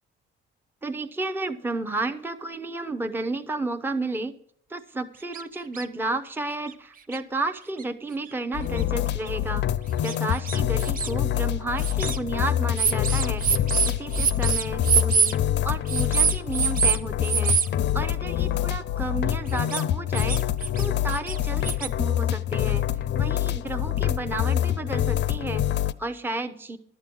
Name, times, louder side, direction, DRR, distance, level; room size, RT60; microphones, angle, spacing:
voice 1, 0.8-4.4 4.7-9.7 10.0-15.4 15.6-20.4 20.8-22.9 23.1-26.8, right 2 dB, 10° right, 7 dB, 0.7 m, -32 dB
sound 1, 5.3-5.4 5.7-5.9 6.7-6.8 7.1-7.2 7.8-7.9 8.8-8.9 9.3-9.4 10.0-11.1 11.8-12.2 12.8-15.4 15.9-17.0 17.2-17.7 19.5-19.8 20.1-20.9 21.1-21.9, right 6 dB, 40° right, 0.8 m, -25 dB
sound 2, 8.5-25.9, left 11 dB, 60° left, 0.6 m, -26 dB
12.0 x 7.4 x 6.2 m, 0.65 s
cardioid pair, 120°, 21 cm